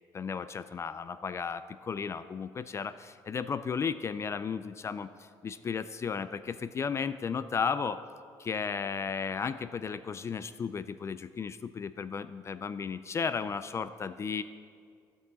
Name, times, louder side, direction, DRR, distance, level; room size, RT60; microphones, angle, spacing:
voice 1, 0.1-8.0 8.4-14.4, left 6 dB, 35° left, 13 dB, 0.3 m, -34 dB
15.0 x 6.2 x 4.0 m, 2.2 s
cardioid pair, 100°, 9 cm